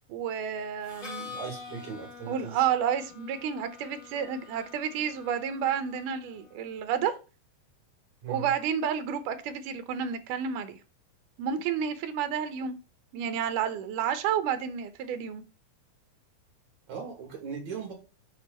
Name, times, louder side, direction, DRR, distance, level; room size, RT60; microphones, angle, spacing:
voice 1, 0.1-1.4 2.3-7.1 8.3-10.8 11.4-12.8 13.1-15.4, right 8 dB, 80° right, 2.3 m, -30 dB
Harmonica, 0.8-6.6, left 5 dB, 75° left, 0.5 m, -46 dB
voice 2, 1.3-2.6 8.2-8.5 16.9-17.9, right 6 dB, 60° right, 3.3 m, -38 dB
8.0 x 3.0 x 5.4 m
omnidirectional pair, 3.8 m